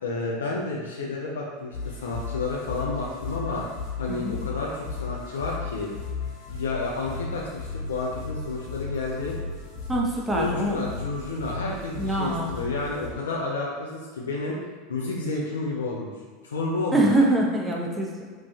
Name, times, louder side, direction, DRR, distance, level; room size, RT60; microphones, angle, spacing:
voice 1, 0.0-3.7 4.0-5.9 6.5-9.4 10.3-14.6 14.9-16.1 16.4-17.1, left 3 dB, 85° left, -3 dB, 0.4 m, -30 dB
sound 1, 1.7-13.1, left 4 dB, 50° left, 1.0 m, -35 dB
voice 2, 4.1-4.4 9.9-10.8 12.0-12.5 16.9-18.1, right 1 dB, 15° right, -2 dB, 0.7 m, -24 dB
3.0 x 2.5 x 3.5 m, 1.5 s
hypercardioid pair, 85°, 0 cm